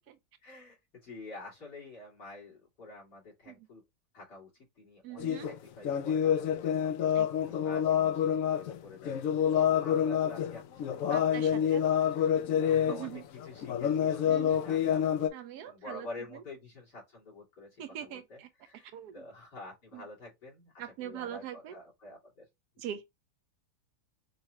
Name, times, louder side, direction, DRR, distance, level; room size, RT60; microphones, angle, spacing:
voice 1, 0.4-3.8 4.1-4.5 4.8-6.9 7.5-14.3 14.6-15.1 15.6-22.4, left 2 dB, 85° left, 2.8 m, -48 dB
voice 2, 5.0-5.5 7.1-7.5 11.1-11.8 12.9-13.2 14.3-14.6 15.3-16.1 17.8-18.5 18.9-19.1 19.9-20.0 20.8-21.7 22.8-23.1, right 10 dB, 75° right, 1.1 m, -42 dB
sound 1, 5.2-5.6 5.8-8.8 9.0-13.1 13.4-15.3, left 9 dB, 70° left, 0.8 m, -28 dB
5.5 x 2.2 x 2.9 m
omnidirectional pair, 1.8 m